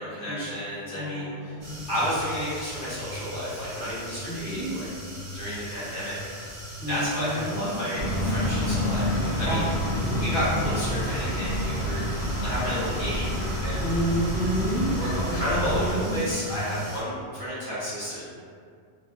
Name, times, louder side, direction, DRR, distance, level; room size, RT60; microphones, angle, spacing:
voice 1, 0.0-1.5 1.9-4.9 5.2-6.5 6.9-9.6 10.2-12.1 12.4-13.9 14.9-18.2, equal, 50° left, -12 dB, 1.1 m, -31 dB
voice 2, 0.9-1.9 4.2-4.7 6.8-7.7 9.5-9.6 9.9-10.5 13.8-14.9 15.2-16.2, right 1 dB, 5° left, -13 dB, 0.8 m, -30 dB
sound 1, 1.6-17.0, right 1 dB, 50° right, 0.9 m, -40 dB
sound 2, 8.0-15.9, equal, 80° left, 0.9 m, -28 dB
2.5 x 2.4 x 2.4 m, 2.2 s
omnidirectional pair, 1.1 m